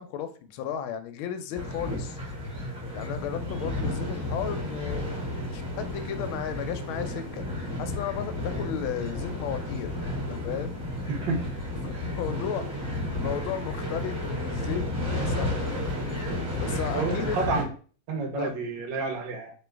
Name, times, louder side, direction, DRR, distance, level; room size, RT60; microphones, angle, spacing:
voice 1, 0.0-2.2 2.9-5.2 5.5-7.5 7.8-9.9 10.3-10.7 11.8-12.6 13.1-15.7 16.6-17.4 18.4-18.5, left 9 dB, 80° left, 9 dB, 1.4 m, -34 dB
sound 1, 1.5-17.6, left 1 dB, 5° right, 1.5 m, -32 dB
voice 2, 16.9-17.7 18.1-19.5, right 3 dB, 65° right, 2 dB, 1.6 m, -30 dB
3.7 x 3.0 x 4.5 m, 0.41 s
omnidirectional pair, 2.3 m